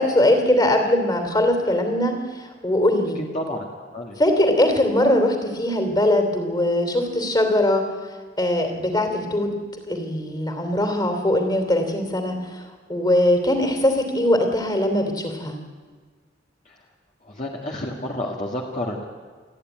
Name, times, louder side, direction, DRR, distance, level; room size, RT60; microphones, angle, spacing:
voice 1, 0.0-3.2 4.2-7.9 8.4-9.6 9.9-12.6 12.9-15.6, left 1 dB, 25° left, 5 dB, 3.0 m, -21 dB
voice 2, 3.3-3.7 3.9-4.2 16.7-16.8 17.2-19.0, left 1 dB, 40° left, -2 dB, 1.9 m, -30 dB
28.5 x 10.0 x 9.1 m, 1.5 s
head